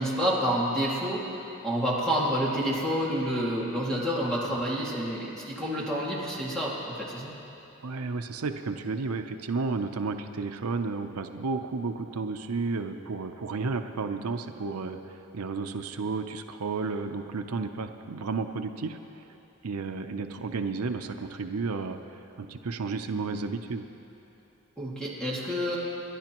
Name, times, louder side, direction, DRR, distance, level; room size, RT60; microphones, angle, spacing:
voice 1, 0.0-1.3 1.6-7.3 24.8-25.8, equal, 5° left, -6 dB, 2.1 m, -28 dB
voice 2, 7.8-15.0 15.3-19.0 19.6-22.0 22.4-23.8, right 4 dB, 90° right, 7 dB, 0.6 m, -32 dB
29.0 x 11.5 x 3.0 m, 2.9 s
head